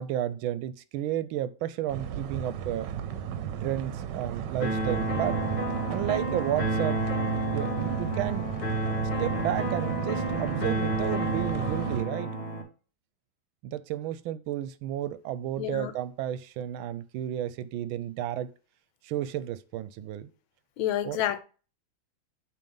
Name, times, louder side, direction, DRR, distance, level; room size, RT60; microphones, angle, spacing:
voice 1, 0.0-2.9 3.6-5.4 5.9-7.0 7.4-8.5 9.2-12.4 13.6-18.5 19.0-20.3 21.0-21.2, right 12 dB, 85° right, 1.4 m, -32 dB
sound 1, 1.9-12.0, right 9 dB, 70° right, 1.2 m, -35 dB
sound 2, 4.6-12.6, right 2 dB, 35° left, 2.4 m, -30 dB
voice 2, 15.6-15.9 20.8-21.4, left 12 dB, 85° left, 1.5 m, -29 dB
8.6 x 3.2 x 5.4 m
omnidirectional pair, 2.2 m